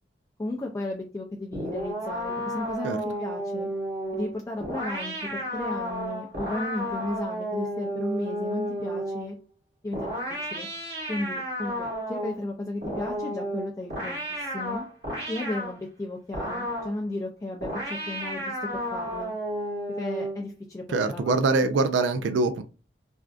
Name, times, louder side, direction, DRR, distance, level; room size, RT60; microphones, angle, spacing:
voice 1, 0.4-3.7 4.1-9.3 9.8-10.7 11.1-14.8 15.3-17.7 18.1-19.3 20.0-21.4, left 2 dB, 20° left, 0 dB, 0.3 m, -34 dB
sound 1, 1.5-9.4 9.9-12.4 12.8-15.8 16.3-17.0 17.6-20.5, equal, 60° right, 1.3 m, -32 dB
voice 2, 20.9-22.6, right 3 dB, 85° right, 9 dB, 0.3 m, -24 dB
3.4 x 2.4 x 2.3 m, 0.33 s
head